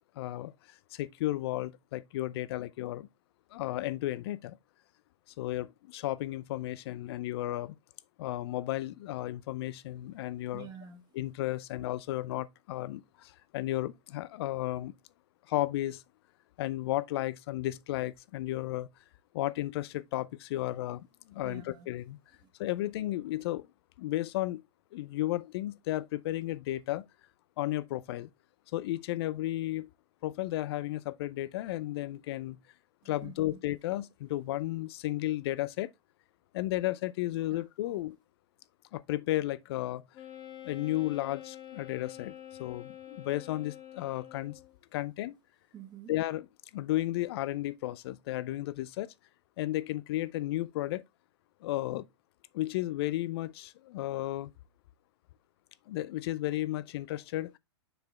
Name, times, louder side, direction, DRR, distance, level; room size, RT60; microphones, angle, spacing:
voice 1, 0.2-0.5 0.9-3.1 3.5-4.6 5.4-7.8 8.2-10.7 11.1-14.9 15.5-16.0 16.6-18.9 19.3-22.2 22.6-23.7 24.0-24.6 24.9-27.0 27.6-28.3 28.7-29.9 30.2-32.6 33.1-35.9 36.5-38.2 38.9-40.0 40.6-44.6 44.9-45.4 46.1-46.5 46.7-49.1 49.6-51.0 51.6-52.1 52.5-54.5 55.9-57.6, left 15 dB, 60° left, 0.6 m, -33 dB
voice 2, 10.5-11.0 21.4-21.9 22.4-22.5 33.0-33.6 37.5-37.6 37.9-38.0 45.7-46.1, right 8 dB, 30° right, 1.7 m, -48 dB
Wind instrument woodwind instrument, 40.1-44.8, left 12 dB, 30° left, 1.3 m, -47 dB
6.7 x 4.7 x 3.5 m
hypercardioid pair, 120°, 15 cm